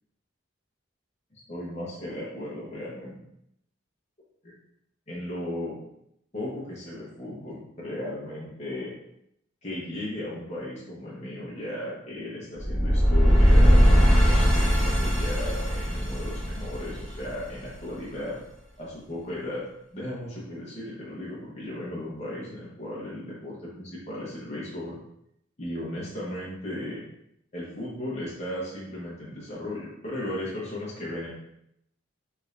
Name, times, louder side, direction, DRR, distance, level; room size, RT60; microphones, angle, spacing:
voice 1, 1.3-3.2 4.4-4.5 5.1-5.8 6.3-8.9 9.6-18.4 18.8-19.6 19.9-25.0 25.6-27.0 27.5-31.3, left 1 dB, 35° left, -7 dB, 0.9 m, -36 dB
sound 1, 12.6-17.6, equal, ahead, 0.9 m, -20 dB
3.5 x 3.2 x 2.5 m, 0.78 s
head